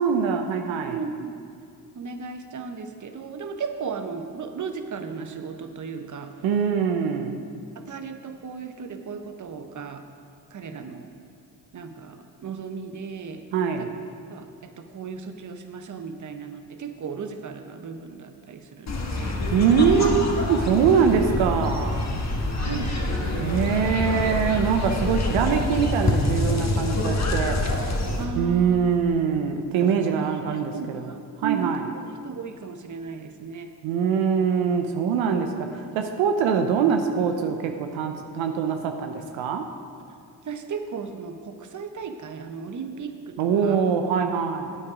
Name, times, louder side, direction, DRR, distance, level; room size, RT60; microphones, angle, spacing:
voice 1, 0.0-1.0 6.4-7.5 13.5-13.9 19.5-22.0 23.4-27.6 28.3-31.1 31.4-31.8 33.8-39.6 43.4-44.8, right 6 dB, 85° right, 5 dB, 0.7 m, -23 dB
voice 2, 0.9-1.4 1.9-6.3 7.7-10.1 10.5-11.1 11.7-13.4 13.8-13.9 14.3-19.4 22.6-23.5 28.2-28.8 29.8-31.7 32.0-33.7 40.4-43.8, right 5 dB, 40° right, 7 dB, 0.9 m, -35 dB
sound 1, 18.9-28.2, left 2 dB, 35° left, 1.6 m, -26 dB
9.0 x 8.7 x 4.9 m, 2.3 s
supercardioid pair, 50°, 45 cm